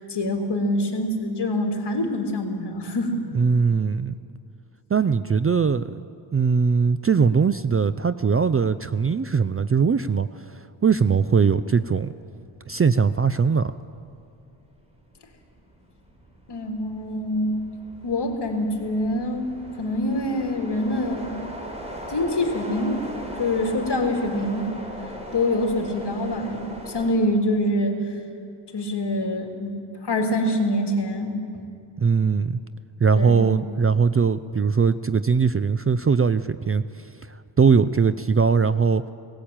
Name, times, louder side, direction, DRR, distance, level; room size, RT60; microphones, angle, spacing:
voice 1, 0.0-3.2 16.5-17.6 18.0-19.5 19.8-21.3 22.1-23.0 23.4-24.7 25.3-27.9 28.7-29.8 30.0-31.4 33.2-33.5, left 1 dB, 55° left, 2 dB, 3.3 m, -25 dB
voice 2, 3.3-4.2 4.9-6.0 6.3-10.3 10.8-12.1 12.7-13.7 32.0-32.6 33.0-39.0, right 5 dB, 30° right, 13 dB, 0.5 m, -20 dB
sound 1, 12.1-12.4 12.8-27.1, equal, 15° right, 4.2 m, -39 dB
18.5 x 16.5 x 8.8 m, 2.6 s
cardioid pair, 80°, 49 cm